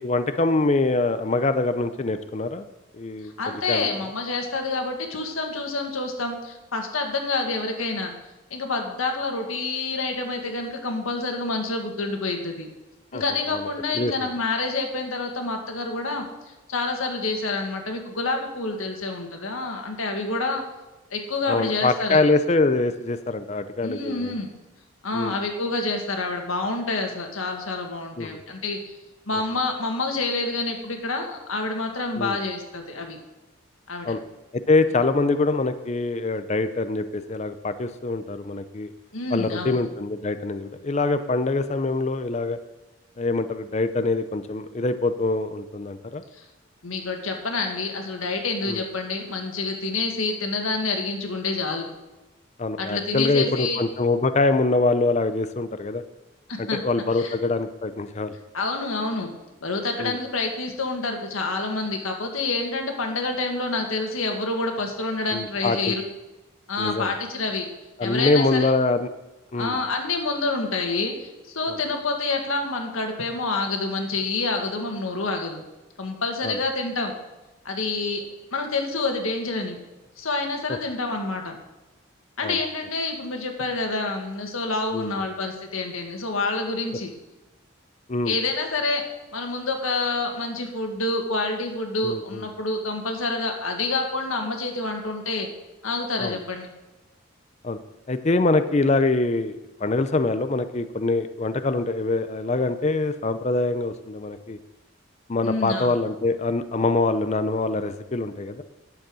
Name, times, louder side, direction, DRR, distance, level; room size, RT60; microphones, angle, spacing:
voice 1, 0.0-2.7 2.9-3.3 3.7-4.0 13.1-13.2 13.5-13.7 13.9-14.3 21.5-24.4 25.1-25.4 28.2-28.4 32.2-32.4 34.0-34.2 34.7-38.9 39.3-42.6 43.2-46.2 48.6-48.8 52.6-56.0 56.6-58.3 60.0-60.2 65.3-65.9 66.8-67.1 68.0-69.1 69.5-69.8 71.7-71.8 76.4-76.6 82.4-82.6 84.9-85.1 88.1-88.3 92.0-92.4 96.2-96.4 97.6-97.8 98.1-104.6 105.3-108.6, left 3 dB, 35° left, 10 dB, 0.5 m, -24 dB
voice 2, 3.4-8.1 8.5-12.7 13.1-20.6 21.1-22.3 23.8-24.5 25.0-28.8 29.3-33.2 33.9-34.2 39.1-39.8 46.3-46.4 46.8-51.9 52.8-53.8 56.5-56.8 57.1-57.4 58.5-59.3 59.6-66.0 66.7-67.7 68.0-68.7 69.6-75.6 76.0-77.1 77.7-78.2 78.5-79.8 80.2-81.6 82.4-87.1 88.2-89.0 89.3-95.5 95.8-96.7 105.4-106.0, left 3 dB, 85° left, 4 dB, 1.8 m, -28 dB
10.5 x 7.0 x 6.3 m, 1.1 s
head